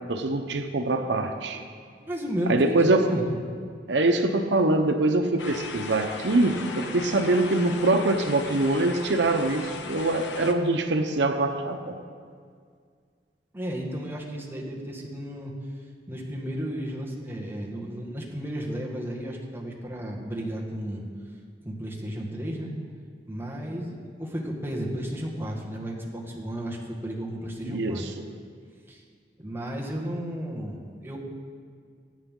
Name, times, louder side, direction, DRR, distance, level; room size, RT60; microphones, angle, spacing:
voice 1, 0.1-1.6 2.5-3.1 3.9-12.0 27.6-28.1, right 2 dB, 90° right, 6 dB, 0.9 m, -24 dB
voice 2, 2.0-3.3 13.5-15.5 16.1-21.0 21.6-22.7 23.3-28.0 28.9-29.0 29.4-31.2, equal, 15° right, -2 dB, 1.8 m, -33 dB
sound 1, 5.4-10.5, left 4 dB, 85° left, 1.1 m, -38 dB
21.5 x 9.0 x 3.8 m, 2.1 s
head